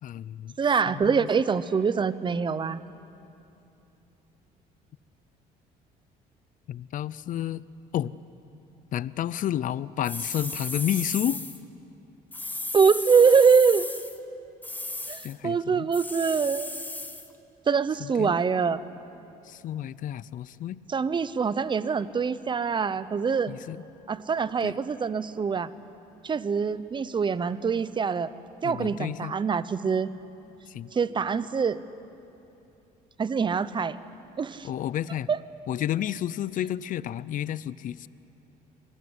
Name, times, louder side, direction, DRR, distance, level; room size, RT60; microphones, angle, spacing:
voice 1, 0.0-0.6 0.9-1.3 6.7-7.7 7.9-8.1 8.9-11.4 15.2-15.9 18.0-18.3 19.4-20.8 23.5-23.8 24.6-24.8 28.6-29.3 30.7-30.9 34.6-35.3 35.7-38.1, left 11 dB, 50° left, 19 dB, 0.5 m, -31 dB
voice 2, 0.6-2.8 12.7-13.9 15.1-16.7 17.7-18.8 20.9-23.5 24.1-25.7 26.2-28.3 28.6-30.1 30.9-31.8 33.2-34.0 34.4-34.7 35.3-35.4, right 5 dB, 30° right, 15 dB, 0.8 m, -24 dB
sound 1, 10.0-11.6 12.3-14.2 14.6-15.3 15.9-17.3, left 2 dB, 10° left, 1.3 m, -35 dB
24.5 x 18.5 x 9.7 m, 2.9 s
cardioid pair, 110°, 17 cm